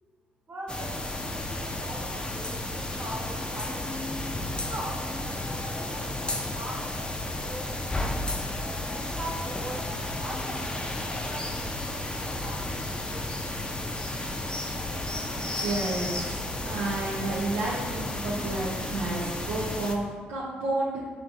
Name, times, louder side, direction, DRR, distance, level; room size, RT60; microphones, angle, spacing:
voice 1, 0.5-4.1 4.5-8.4 8.9-13.7, right 1 dB, 45° right, -3 dB, 1.1 m, -42 dB
sound 1, 0.7-20.0, left 1 dB, 20° left, 0.5 m, -32 dB
voice 2, 15.3-21.1, right 2 dB, 75° right, -6 dB, 0.6 m, -31 dB
5.1 x 3.3 x 2.5 m, 1.5 s
hypercardioid pair, 45°, 4 cm